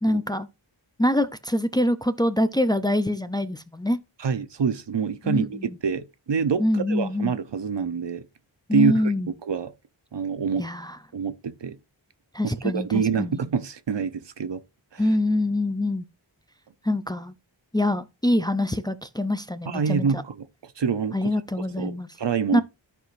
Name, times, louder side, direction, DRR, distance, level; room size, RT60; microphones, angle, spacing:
voice 1, 0.0-0.5 1.0-4.0 5.2-5.8 6.6-7.3 8.7-9.3 10.6-11.0 12.3-13.4 15.0-16.1 16.8-17.3 17.7-20.2 21.1-22.1 22.5-22.6, left 1 dB, 10° left, 0.5 m, -25 dB
voice 2, 4.2-8.2 8.7-9.1 9.5-9.7 10.1-10.6 11.1-11.8 12.4-14.6 14.9-15.0 19.7-21.3 21.8-22.6, right 6 dB, 65° right, 0.8 m, -26 dB
14.0 x 4.8 x 2.5 m
wide cardioid pair, 70°, 45 cm